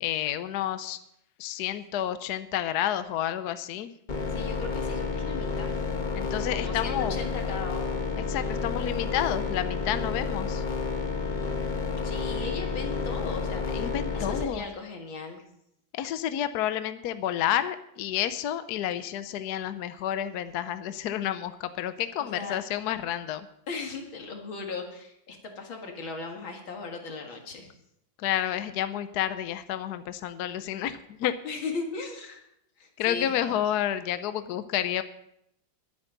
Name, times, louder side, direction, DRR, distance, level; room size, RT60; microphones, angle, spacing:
voice 1, 0.0-1.0 1.4-3.9 6.1-7.2 8.3-10.6 13.7-14.7 15.9-23.5 28.2-31.3 33.0-35.0, left 11 dB, 65° left, 12 dB, 1.1 m, -30 dB
sound 1, 4.1-14.4, left 4 dB, 25° left, 1.2 m, -30 dB
voice 2, 4.3-5.8 6.5-8.0 12.0-15.4 22.2-22.6 23.7-27.7 31.4-32.4 32.8-33.6, left 4 dB, 85° left, 3 dB, 2.7 m, -37 dB
21.0 x 8.9 x 3.9 m, 0.75 s
omnidirectional pair, 2.1 m